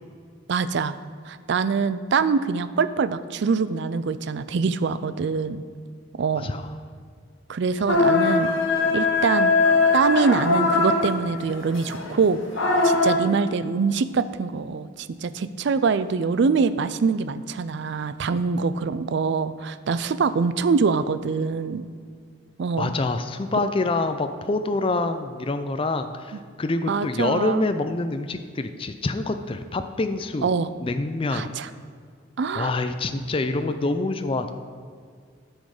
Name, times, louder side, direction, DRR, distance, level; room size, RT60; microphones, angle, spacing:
voice 1, 0.5-0.9 1.3-5.6 6.2-6.5 7.5-8.5 8.9-9.5 9.9-12.4 12.8-21.9 22.6-22.9 26.9-27.7 30.4-30.7 31.3-31.7 32.4-32.7, right 5 dB, 60° right, 14 dB, 0.4 m, -24 dB
voice 2, 6.4-6.7 22.8-30.5 30.8-31.5 32.5-34.5, left 2 dB, 30° left, 8 dB, 0.4 m, -26 dB
sound 1, 7.9-13.2, left 3 dB, 80° left, 1.4 m, -21 dB
10.5 x 6.4 x 4.9 m, 2.1 s
head